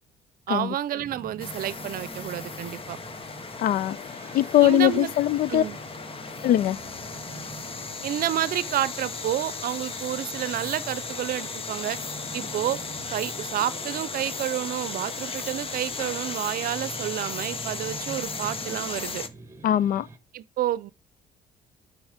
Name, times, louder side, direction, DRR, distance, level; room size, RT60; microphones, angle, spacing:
voice 1, 0.5-3.0 4.6-5.1 5.5-5.8 8.0-12.0 12.3-12.8 13.1-19.2 20.3-20.9, right 12 dB, 60° right, 0.6 m, -29 dB
sound 1, 1.0-20.2, right 3 dB, 15° right, 1.4 m, -45 dB
sound 2, 1.4-19.3, left 4 dB, 35° left, 0.9 m, -36 dB
voice 2, 3.6-4.0 4.3-5.6 6.4-6.8 19.6-20.1, left 12 dB, 55° left, 0.4 m, -21 dB
7.1 x 5.5 x 5.0 m
cardioid pair, 110°, 17 cm